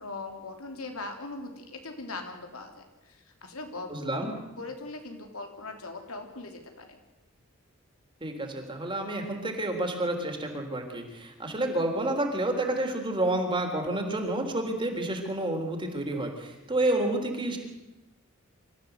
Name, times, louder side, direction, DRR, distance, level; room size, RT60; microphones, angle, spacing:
voice 1, 0.0-4.2 4.6-7.0, left 3 dB, 85° left, 4 dB, 3.4 m, -40 dB
voice 2, 3.9-4.3 8.2-17.6, right 1 dB, 25° right, 3 dB, 3.6 m, -29 dB
25.5 x 14.0 x 8.1 m, 1.0 s
head